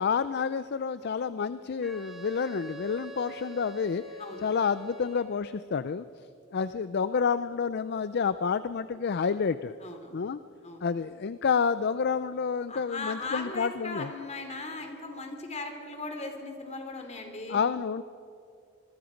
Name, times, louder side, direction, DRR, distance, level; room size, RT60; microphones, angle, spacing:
voice 1, 0.0-4.0 4.4-6.1 6.5-9.7 10.1-10.4 10.8-14.1 17.5-18.0, left 6 dB, 50° left, 14 dB, 0.4 m, -29 dB
Wind instrument woodwind instrument, 1.8-5.6, right 2 dB, ahead, 2.1 m, -45 dB
voice 2, 9.8-10.2 10.6-10.8 12.7-17.6, left 3 dB, 35° left, 5 dB, 2.8 m, -38 dB
26.0 x 21.0 x 5.2 m, 2.5 s
head